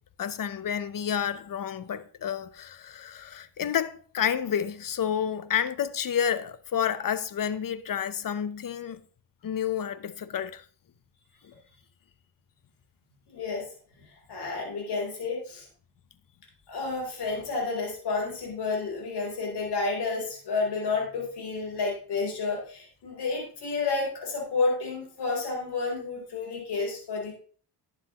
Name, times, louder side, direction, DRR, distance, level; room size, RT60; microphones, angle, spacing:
voice 1, 0.2-9.0 9.4-10.6 11.4-11.5, left 8 dB, 55° left, 0.9 m, -30 dB
voice 2, 13.3-13.6 14.3-15.6 16.7-27.3, left 4 dB, 80° left, 3.9 m, -30 dB
11.5 x 8.1 x 3.1 m
cardioid pair, 70°, 39 cm